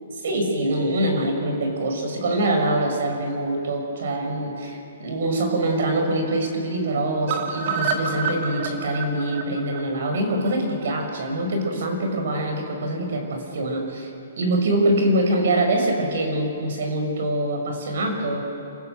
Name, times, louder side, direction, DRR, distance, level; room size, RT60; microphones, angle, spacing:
voice 1, 0.2-14.1 14.4-18.5, right 1 dB, 65° right, 3 dB, 5.7 m, -24 dB
sound 1, 7.3-11.3 11.6-11.7 12.0-12.1 12.4-12.5, right 5 dB, 45° right, 2.4 m, -29 dB
30.0 x 16.0 x 6.6 m, 2.7 s
hypercardioid pair, 150°, 0 cm